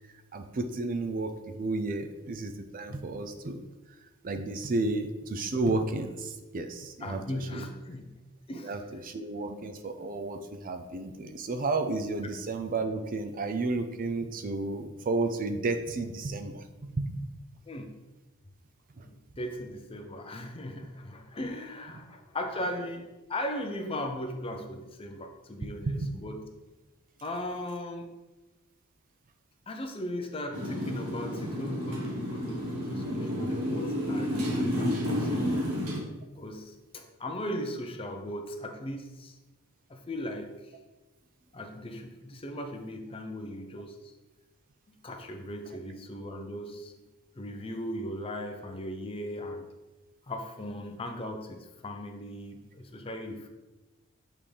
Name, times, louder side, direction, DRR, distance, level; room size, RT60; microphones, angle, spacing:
voice 1, 0.3-3.7 4.2-7.7 8.5-17.3 19.0-19.1 25.9-26.1 33.7-33.8, right 3 dB, 40° right, 8 dB, 0.4 m, -32 dB
voice 2, 7.0-8.1 8.5-9.0 17.7-18.0 19.0-26.4 27.2-28.1 29.7-35.6 36.3-39.4 39.9-40.7 41.5-44.1 44.9-46.9 47.4-49.7 50.3-53.5, left 1 dB, 25° left, 5 dB, 0.6 m, -38 dB
Motorcycle, 30.5-36.0, equal, 85° right, 1.3 m, -31 dB
8.3 x 3.6 x 3.3 m, 1.1 s
head